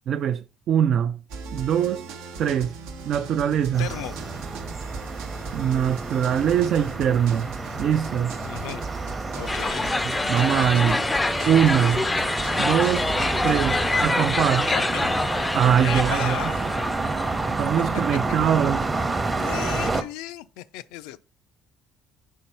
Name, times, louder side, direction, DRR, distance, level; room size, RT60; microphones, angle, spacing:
voice 1, 0.1-1.2 1.5-2.0 2.4-2.7 3.1-3.9 5.5-7.5 7.8-8.4 10.0-11.0 11.5-12.0 12.6-13.1 13.4-14.7 15.5-16.4 17.6-18.9, right 9 dB, 60° right, 0.4 m, -22 dB
sound 1, 1.3-14.2, right 4 dB, 85° right, 0.9 m, -38 dB
sound 2, 3.7-20.0, right 3 dB, 25° right, 0.8 m, -29 dB
voice 2, 3.8-4.2 8.4-8.8 9.3-9.9 14.7-15.1 15.8-16.7 19.4-21.2, left 14 dB, 85° left, 0.4 m, -35 dB
sound 3, 9.5-17.6, left 2 dB, 20° left, 0.4 m, -26 dB
4.5 x 4.4 x 5.4 m
supercardioid pair, 80°, 0 cm